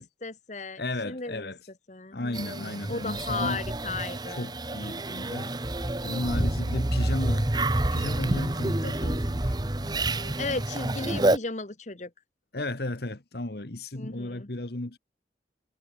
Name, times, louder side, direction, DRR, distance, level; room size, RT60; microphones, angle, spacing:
voice 1, 0.0-1.5 1.9-4.5 10.4-12.1 13.9-14.5, left 3 dB, 40° left, 1.3 m, -35 dB
voice 2, 0.8-1.6 2.1-3.6 4.3-5.6 6.0-7.5 7.9-10.5 12.5-15.0, left 2 dB, 60° left, 1.4 m, -34 dB
sound 1, 2.3-11.4, right 1 dB, 25° right, 1.0 m, -28 dB
head